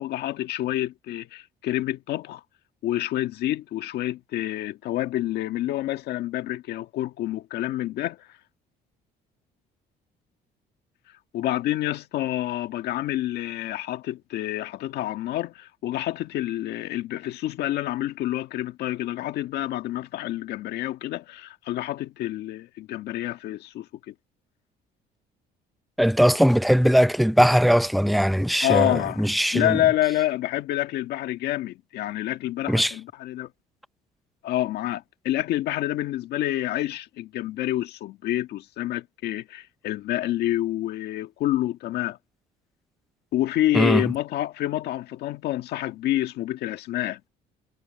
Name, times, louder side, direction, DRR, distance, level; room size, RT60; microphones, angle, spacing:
voice 1, 0.0-2.4 2.8-8.3 11.3-24.1 28.6-29.3 29.5-33.5 34.4-42.2 43.3-47.2, left 14 dB, 75° left, 1.6 m, -28 dB
voice 2, 26.0-29.8 32.7-32.9 43.7-44.0, equal, ahead, 0.6 m, -20 dB
cardioid pair, 110°, 17 cm